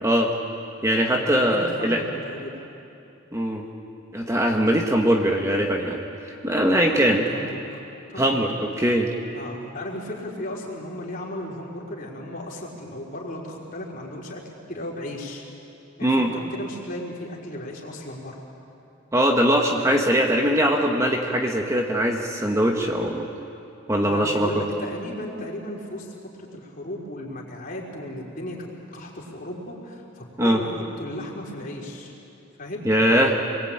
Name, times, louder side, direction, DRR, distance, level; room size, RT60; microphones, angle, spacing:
voice 1, 0.0-0.3 0.8-2.0 3.3-3.6 4.1-6.0 6.4-7.2 8.2-9.1 16.0-16.3 19.1-23.3 23.9-24.5 30.4-30.6 32.8-33.4, equal, 15° right, 1 dB, 1.5 m, -21 dB
voice 2, 1.1-2.6 6.7-7.8 8.1-8.4 8.8-8.9 9.3-15.4 16.0-18.4 24.0-32.1 32.6-32.9, left 1 dB, 40° left, -2 dB, 4.4 m, -35 dB
28.0 x 21.5 x 8.9 m, 2.7 s
head